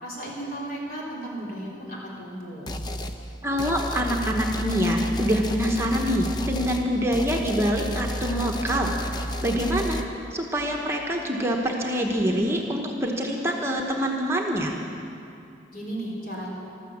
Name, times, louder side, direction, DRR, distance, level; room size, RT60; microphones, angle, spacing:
voice 1, 0.0-2.7 15.7-16.5, right 1 dB, 55° left, -4 dB, 3.8 m, -35 dB
sound 1, 2.7-3.2 3.6-10.1, equal, 25° left, 0.6 m, -31 dB
voice 2, 3.4-10.0 10.3-14.8, equal, 15° right, 0 dB, 1.0 m, -25 dB
14.0 x 13.0 x 7.3 m, 2.7 s
head